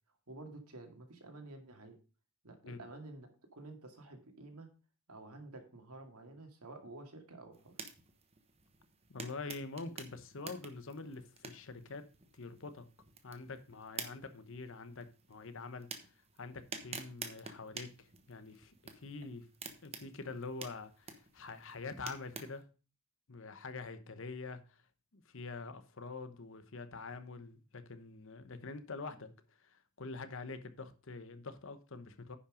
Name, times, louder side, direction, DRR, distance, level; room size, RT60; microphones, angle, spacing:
voice 1, 0.3-2.0 2.4-4.7 5.1-7.7, right 2 dB, 85° right, 2.2 m, -51 dB
sound 1, 7.5-22.6, right 5 dB, 25° right, 1.1 m, -50 dB
voice 2, 9.1-12.1 12.3-12.9 13.2-19.5 19.8-22.6 23.3-24.8 25.1-32.4, left 3 dB, 60° left, 1.0 m, -46 dB
9.9 x 5.7 x 5.1 m
head